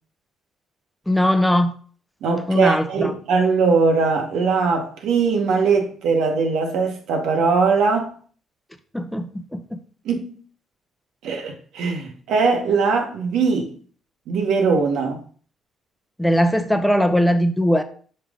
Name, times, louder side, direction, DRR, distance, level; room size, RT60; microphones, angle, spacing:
voice 1, 1.1-1.7 2.5-3.1 8.9-9.8 16.2-17.8, equal, 5° left, 0.7 m, -19 dB
voice 2, 2.2-8.1 10.0-10.4 11.2-13.7 14.3-15.2, right 4 dB, 85° right, 1.2 m, -20 dB
5.5 x 4.8 x 3.7 m
cardioid pair, 90°, 0 cm